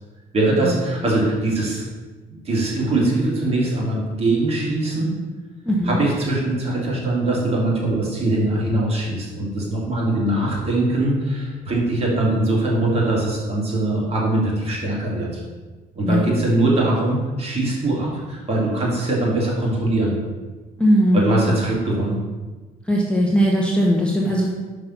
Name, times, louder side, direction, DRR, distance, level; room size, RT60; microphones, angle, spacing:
voice 1, 0.3-1.8 2.4-5.1 5.8-15.4 15.9-20.1 21.1-22.2, right 2 dB, 35° right, -4 dB, 2.6 m, -22 dB
voice 2, 5.7-6.0 16.0-16.3 20.8-21.6 22.9-24.5, equal, 5° left, -3 dB, 1.0 m, -19 dB
5.7 x 5.3 x 5.8 m, 1.3 s
cardioid pair, 110°, 17 cm